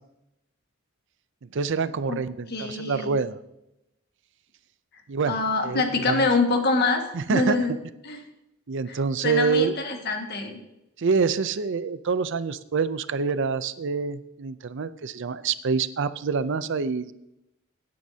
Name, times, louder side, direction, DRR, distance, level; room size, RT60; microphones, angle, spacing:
voice 1, 1.5-3.4 5.1-5.4 5.6-6.3 7.1-7.6 8.7-9.8 11.0-17.1, right 5 dB, 60° right, 14 dB, 0.5 m, -26 dB
voice 2, 2.5-3.2 5.3-7.0 7.3-7.7 8.0-8.2 8.9-10.6, left 3 dB, 50° left, 3 dB, 1.8 m, -25 dB
17.5 x 9.4 x 2.8 m, 0.87 s
head